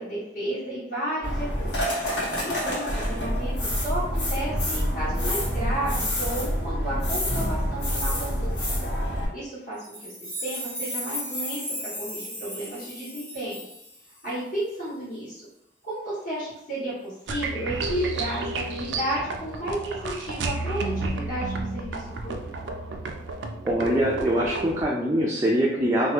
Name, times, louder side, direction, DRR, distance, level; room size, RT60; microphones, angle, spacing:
voice 1, 0.0-1.8 2.4-8.6 9.3-10.1 10.4-13.6 14.2-15.5 15.8-22.7, right 1 dB, 55° left, -14 dB, 1.4 m, -32 dB
sound 1, 1.2-9.3, equal, 85° left, 1.3 m, -27 dB
sound 2, 9.8-14.3, equal, 10° left, 0.7 m, -35 dB
sound 3, 17.3-24.8, right 3 dB, 85° right, 0.4 m, -32 dB
voice 2, 23.6-26.1, right 1 dB, 15° right, -5 dB, 0.3 m, -23 dB
2.9 x 2.2 x 3.2 m, 0.78 s
head